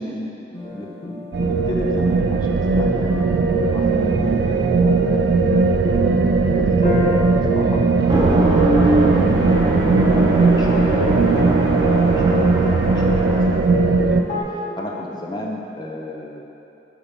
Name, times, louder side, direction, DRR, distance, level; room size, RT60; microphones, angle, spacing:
voice 1, 0.0-5.4 6.5-7.8 8.4-14.2 14.5-16.4, left 1 dB, 25° left, -1 dB, 0.6 m, -33 dB
sound 1, 0.5-14.4, left 2 dB, 45° left, 1.1 m, -30 dB
sound 2, 1.3-14.2, right 4 dB, 60° right, 0.3 m, -18 dB
sound 3, 8.0-13.6, right 1 dB, 25° right, 0.6 m, -22 dB
8.3 x 2.9 x 5.2 m, 2.9 s
head